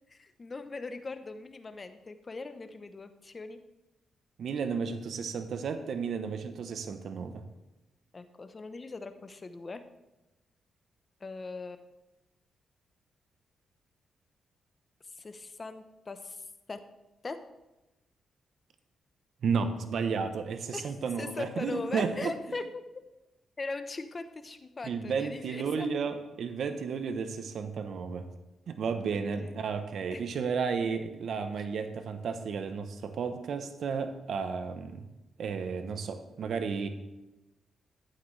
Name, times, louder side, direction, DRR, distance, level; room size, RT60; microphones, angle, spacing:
voice 1, 0.1-3.6 8.1-9.8 11.2-11.9 15.2-16.8 17.2-17.4 20.7-22.8 23.6-25.9 29.1-29.6 30.1-30.2, left 3 dB, 35° left, 9 dB, 0.9 m, -40 dB
voice 2, 4.4-7.4 19.4-22.3 24.8-28.3 28.7-35.1 35.4-36.9, right 5 dB, 70° right, 8 dB, 0.9 m, -33 dB
11.5 x 8.7 x 3.3 m, 1.0 s
cardioid pair, 90°, 0 cm